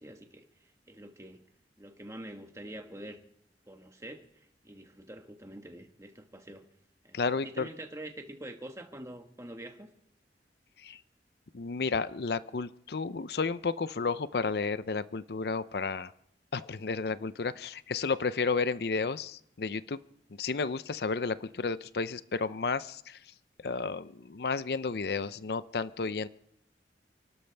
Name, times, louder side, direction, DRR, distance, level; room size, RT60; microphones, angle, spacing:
voice 1, 0.0-1.4 1.8-3.2 3.7-6.6 7.0-9.9, right 1 dB, 15° right, 5 dB, 1.4 m, -46 dB
voice 2, 7.1-7.7 10.8-11.0 11.5-16.1 16.5-20.0 20.4-23.2 23.6-26.3, left 4 dB, 60° left, 15 dB, 0.6 m, -32 dB
30.0 x 12.5 x 3.4 m, 0.78 s
head